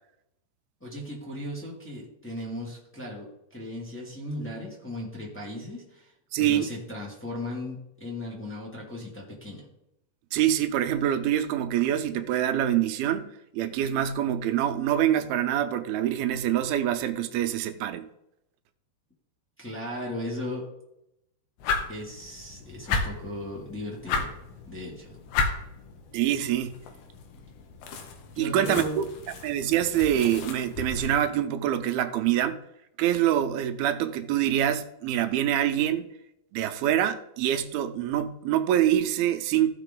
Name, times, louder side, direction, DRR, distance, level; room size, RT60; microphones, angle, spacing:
voice 1, 0.8-6.1 6.4-9.7 19.6-20.7 21.9-24.3 24.7-25.2 28.3-29.0, left 1 dB, 5° left, 1.4 m, -36 dB
voice 2, 6.3-6.7 10.3-18.1 26.1-26.8 28.4-29.0 29.4-32.6 33.0-36.1 36.5-39.7, right 11 dB, 85° right, 2.6 m, -25 dB
sound 1, 21.6-31.1, left 4 dB, 90° left, 3.1 m, -34 dB
14.5 x 5.7 x 3.9 m
omnidirectional pair, 4.3 m